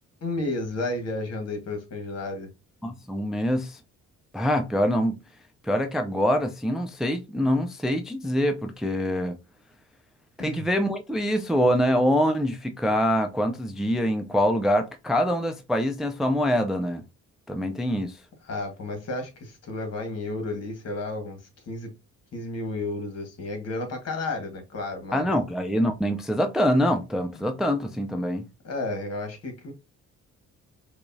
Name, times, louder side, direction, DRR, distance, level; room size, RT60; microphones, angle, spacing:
voice 1, 0.2-2.5 10.4-10.7 18.4-21.4 21.7-21.9 22.3-25.2 28.6-29.7, left 2 dB, 55° left, 1.5 m, -32 dB
voice 2, 2.8-3.8 4.3-5.2 5.6-9.4 10.4-17.0 17.5-18.2 25.1-28.5, equal, ahead, 0.4 m, -24 dB
4.9 x 2.3 x 2.6 m
cardioid pair, 90°, 30 cm